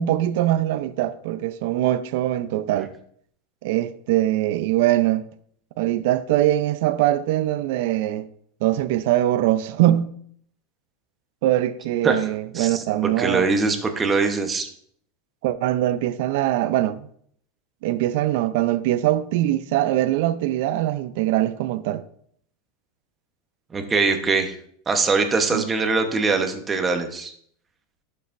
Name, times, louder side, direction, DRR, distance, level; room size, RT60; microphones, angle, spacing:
voice 1, 0.0-2.9 3.6-5.3 5.8-8.3 8.6-10.1 11.4-13.5 15.4-17.0 17.8-22.0 25.5-25.7, right 14 dB, 65° right, 0.5 m, -22 dB
voice 2, 12.5-14.7 23.7-24.5 24.9-27.3, right 4 dB, 15° right, 1.0 m, -22 dB
11.5 x 6.7 x 2.6 m
supercardioid pair, 140°, 0 cm